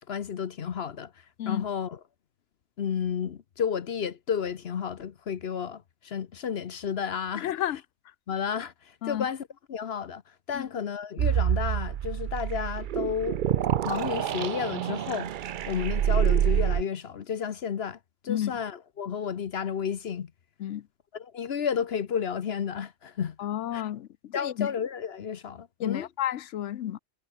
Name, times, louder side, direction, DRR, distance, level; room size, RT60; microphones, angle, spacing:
voice 1, 0.1-1.1 1.5-2.0 2.8-7.5 8.3-13.4 13.8-15.3 15.7-18.0 18.2-20.3 21.1-23.4 23.7-23.8 24.3-26.1, left 7 dB, 65° left, 1.1 m, -32 dB
voice 2, 7.3-7.8 9.0-9.3 10.5-10.7 18.3-18.5 20.6-20.9 23.4-24.7 25.8-27.0, left 12 dB, 85° left, 1.0 m, -31 dB
sound 1, 11.2-16.8, right 10 dB, 55° right, 0.6 m, -27 dB
omnidirectional pair, 1.2 m